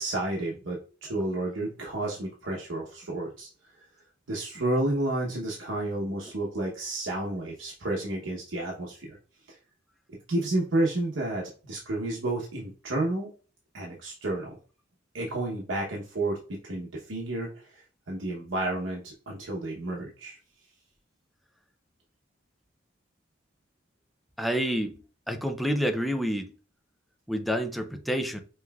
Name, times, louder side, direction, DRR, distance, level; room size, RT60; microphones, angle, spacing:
voice 1, 0.0-3.5 4.3-9.2 9.5-9.6 10.3-13.3 13.7-14.6 15.1-20.4, right 2 dB, 85° right, 0.9 m, -31 dB
voice 2, 24.4-25.0 25.3-26.5 27.3-28.4, equal, ahead, 0.4 m, -28 dB
5.5 x 3.1 x 2.3 m
head